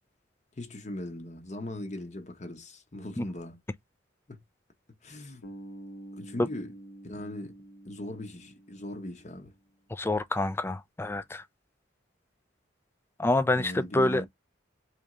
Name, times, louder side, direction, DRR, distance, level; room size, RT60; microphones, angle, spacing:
voice 1, 0.6-3.6 4.3-4.4 5.0-5.5 6.2-6.7 7.0-7.5 7.8-9.5 13.6-14.3, left 1 dB, 35° left, 0.8 m, -39 dB
Bass guitar, 5.4-9.5, right 1 dB, 75° left, 1.0 m, -48 dB
voice 2, 9.9-11.4 13.2-14.3, left 2 dB, 10° left, 0.3 m, -27 dB
3.3 x 3.0 x 3.6 m
head